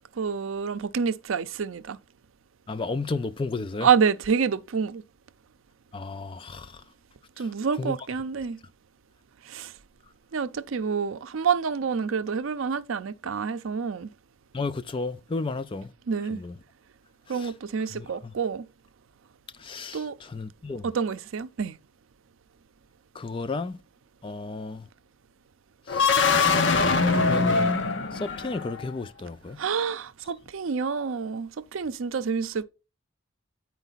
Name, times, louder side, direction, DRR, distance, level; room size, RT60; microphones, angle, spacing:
voice 1, 0.2-2.0 3.8-5.0 7.4-8.6 9.5-9.7 10.3-14.1 16.1-16.4 17.3-18.7 19.9-20.1 20.8-21.8 29.6-32.6, right 6 dB, 80° right, 0.5 m, -27 dB
voice 2, 2.7-3.9 5.9-6.8 7.8-8.0 14.5-15.9 16.3-16.5 17.4-17.5 18.0-18.1 19.6-20.0 20.3-20.8 23.2-23.8 24.2-24.8 25.9-26.2 27.0-27.7 28.1-29.6, left 3 dB, 25° left, 0.3 m, -33 dB
Ascending Jumpscare, 25.9-28.9, left 4 dB, 60° left, 0.8 m, -22 dB
8.9 x 4.6 x 4.0 m
head